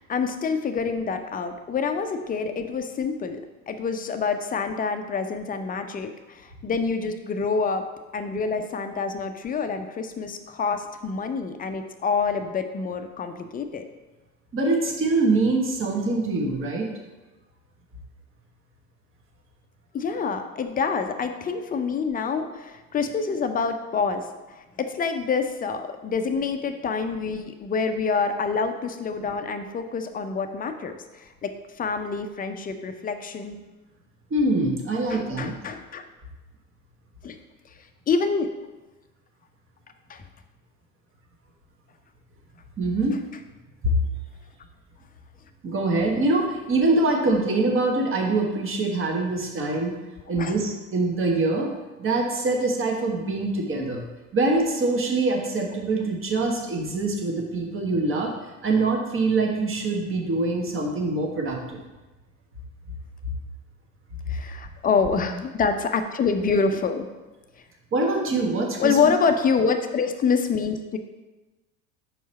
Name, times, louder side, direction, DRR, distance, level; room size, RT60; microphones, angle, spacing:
voice 1, 0.0-3.4 3.7-7.9 8.1-13.8 19.9-31.5 31.8-33.6 35.1-36.0 37.2-37.4 38.1-38.5 40.1-40.2 50.3-50.5 64.3-67.1 68.8-71.0, left 5 dB, 20° left, 7 dB, 0.5 m, -26 dB
voice 2, 14.5-16.9 34.3-35.5 42.8-43.2 43.8-43.9 45.6-49.9 50.3-51.7 52.0-54.0 54.3-58.3 58.6-61.8 67.9-69.1, right 2 dB, 30° right, 1 dB, 1.3 m, -24 dB
5.7 x 4.6 x 4.1 m, 1.1 s
figure-of-eight pair, 65°, 43 cm